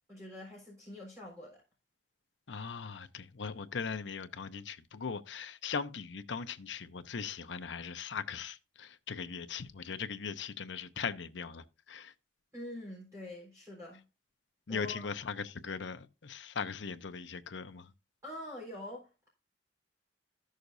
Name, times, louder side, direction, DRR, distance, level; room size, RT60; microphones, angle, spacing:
voice 1, 0.1-1.6 12.5-14.0 14.7-15.1 18.2-19.3, left 1 dB, 20° right, 4.0 m, -45 dB
voice 2, 2.5-12.1 14.7-17.9, left 5 dB, 85° left, 0.7 m, -39 dB
14.0 x 6.5 x 2.6 m
head